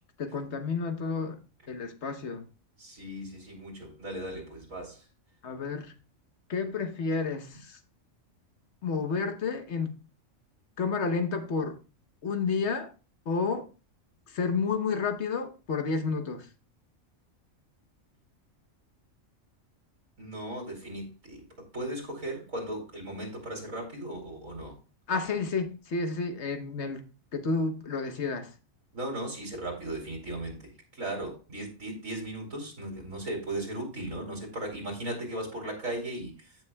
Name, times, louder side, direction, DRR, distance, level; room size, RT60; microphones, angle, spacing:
voice 1, 0.2-1.4 1.7-2.4 5.4-5.9 6.5-7.8 8.8-10.0 10.8-11.8 12.2-12.9 13.3-13.7 14.3-16.5 25.1-27.0 27.3-28.5, left 4 dB, 60° left, 1.3 m, -30 dB
voice 2, 2.8-5.0 20.2-24.8 28.9-36.6, right 1 dB, 80° right, 3.3 m, -37 dB
15.0 x 6.2 x 2.2 m
omnidirectional pair, 1.4 m